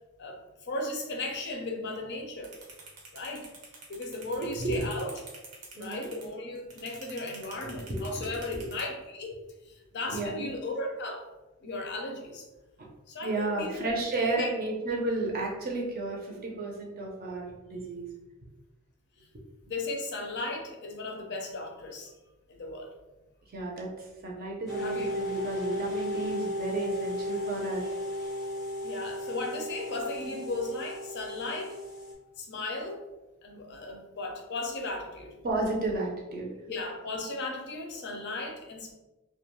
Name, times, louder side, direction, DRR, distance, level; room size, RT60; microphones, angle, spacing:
voice 1, 0.2-2.5 3.1-3.5 3.9-5.1 5.8-9.4 9.6-11.3 11.6-12.5 13.1-13.8 14.3-14.5 19.6-22.1 22.5-22.9 24.8-25.1 28.8-31.8 32.4-33.0 33.4-35.3 36.7-38.9, left 2 dB, 50° left, 1 dB, 0.5 m, -36 dB
sound 1, 2.4-8.8, right 4 dB, 90° right, 0.8 m, -47 dB
voice 2, 4.4-4.9 5.7-6.1 7.6-8.7 10.1-10.5 12.8-12.9 13.2-18.1 23.5-27.9 35.4-36.5, right 2 dB, 40° right, -1 dB, 0.5 m, -33 dB
sound 2, 24.7-32.1, equal, ahead, 0.6 m, -35 dB
2.4 x 2.2 x 3.0 m, 1.1 s
head